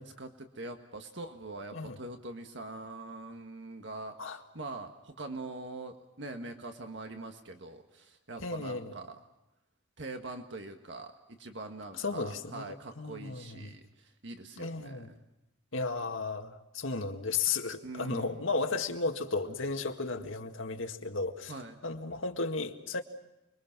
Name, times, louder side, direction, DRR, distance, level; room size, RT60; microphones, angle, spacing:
voice 1, 0.0-9.2 10.0-15.2 17.8-18.5 21.5-21.8, right 2 dB, 65° right, 5 dB, 1.7 m, -43 dB
voice 2, 8.4-8.9 12.0-13.7 14.6-15.1 15.7-21.5 21.8-23.0, left 3 dB, 85° left, 5 dB, 1.9 m, -34 dB
29.5 x 22.5 x 6.1 m, 0.92 s
head